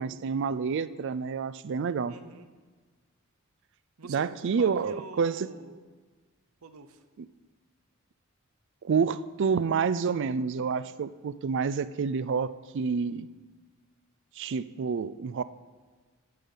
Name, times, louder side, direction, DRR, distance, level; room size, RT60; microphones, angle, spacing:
voice 1, 0.0-2.1 4.1-5.5 7.2-7.3 8.8-13.3 14.4-15.4, right 5 dB, 60° right, 16 dB, 0.4 m, -28 dB
voice 2, 2.1-2.5 4.0-5.8 6.6-7.0, right 4 dB, 85° right, 9 dB, 0.8 m, -45 dB
11.0 x 7.1 x 5.6 m, 1.4 s
head